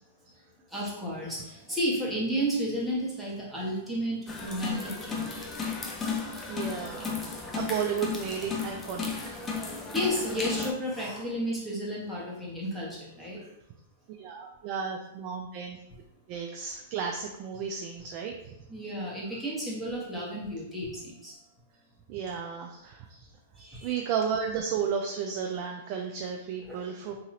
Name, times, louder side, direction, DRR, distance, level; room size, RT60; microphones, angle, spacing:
voice 1, 0.7-5.5 9.9-13.4 18.7-21.3 23.6-23.9 26.6-26.8 27.1-27.2, equal, ahead, -6 dB, 1.1 m, -32 dB
sound 1, 4.3-10.7, left 5 dB, 20° left, 0.5 m, -34 dB
voice 2, 6.3-9.4 14.1-15.8 16.3-18.3 22.1-23.3 23.6-27.1, right 7 dB, 45° right, 2 dB, 0.4 m, -33 dB
2.9 x 2.7 x 2.6 m, 0.84 s
hypercardioid pair, 120°, 0 cm